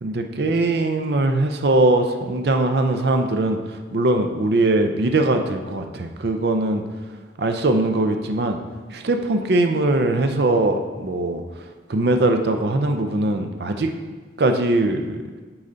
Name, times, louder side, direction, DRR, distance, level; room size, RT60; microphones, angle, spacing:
voice 1, 0.0-6.8 7.4-8.6 8.9-11.4 11.9-13.9 14.4-15.2, right 2 dB, 60° right, 5 dB, 0.5 m, -21 dB
8.8 x 3.9 x 3.9 m, 1.4 s
head